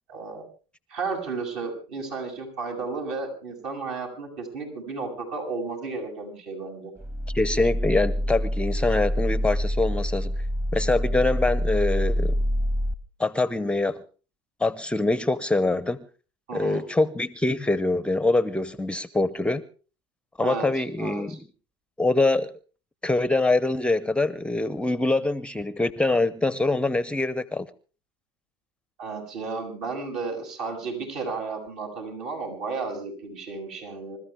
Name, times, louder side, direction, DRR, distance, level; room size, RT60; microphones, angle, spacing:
voice 1, 0.1-0.4 0.9-6.9 16.5-16.8 20.4-20.7 21.0-21.4 29.0-34.2, right 4 dB, 60° right, 7.8 m, -33 dB
sound 1, 7.0-12.9, equal, 20° right, 1.4 m, -26 dB
voice 2, 7.3-10.3 10.7-12.3 13.2-14.0 14.6-16.1 16.5-19.6 20.4-21.4 22.0-22.5 23.0-27.7, left 2 dB, 10° left, 0.7 m, -24 dB
26.0 x 14.0 x 3.6 m
supercardioid pair, 100°, 13 cm